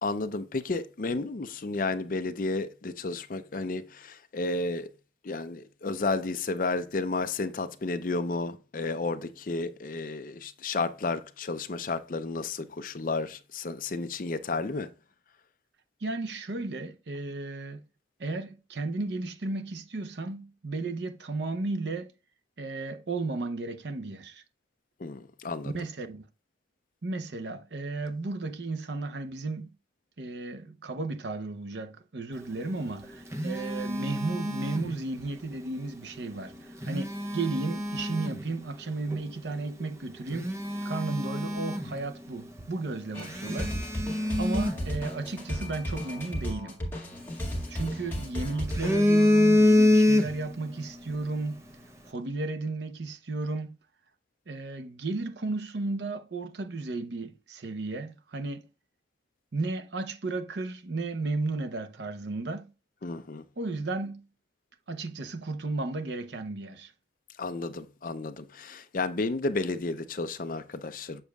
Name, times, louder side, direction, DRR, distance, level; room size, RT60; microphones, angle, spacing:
voice 1, 0.0-4.9 5.2-14.9 25.0-25.7 63.0-63.4 67.4-71.2, left 3 dB, 45° left, 0.5 m, -32 dB
voice 2, 16.0-17.8 18.2-22.1 22.6-24.4 25.7-26.2 27.0-29.7 30.2-40.5 40.8-43.8 44.1-46.8 47.7-51.6 52.1-53.8 54.5-58.7 59.5-62.7 63.6-64.2 64.9-66.9, right 3 dB, 70° right, 0.7 m, -34 dB
Telephone, 32.8-35.3 36.6-38.5 39.1-39.3 39.8-39.9 40.3-42.3 42.6-42.7 43.2-45.6 47.1-48.1 48.5-50.6 50.9-51.2, left 1 dB, 15° right, 0.6 m, -26 dB
sound 1, 43.1-48.9, equal, 10° left, 1.8 m, -34 dB
7.2 x 6.7 x 2.3 m
head